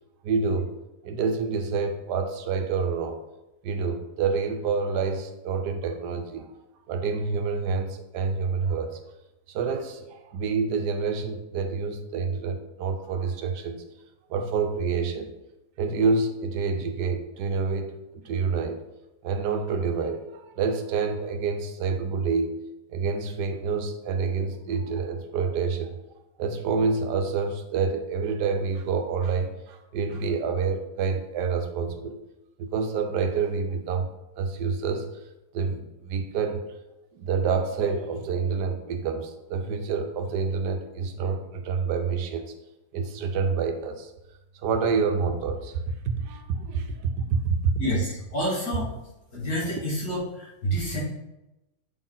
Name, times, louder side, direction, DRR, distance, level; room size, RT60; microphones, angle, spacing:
voice 1, 0.2-0.7 1.0-3.2 3.6-6.5 6.9-9.0 9.5-13.8 14.3-15.3 15.8-18.8 19.2-22.5 22.9-25.9 26.4-32.2 32.6-34.1 34.4-35.1 35.5-36.6 37.1-42.5 42.9-44.1 44.5-45.8 46.2-47.7, right 5 dB, 80° right, 7 dB, 1.3 m, -27 dB
voice 2, 47.8-48.9 49.3-51.0, equal, 60° left, -6 dB, 2.6 m, -28 dB
7.5 x 4.2 x 3.9 m, 0.95 s
omnidirectional pair, 1.8 m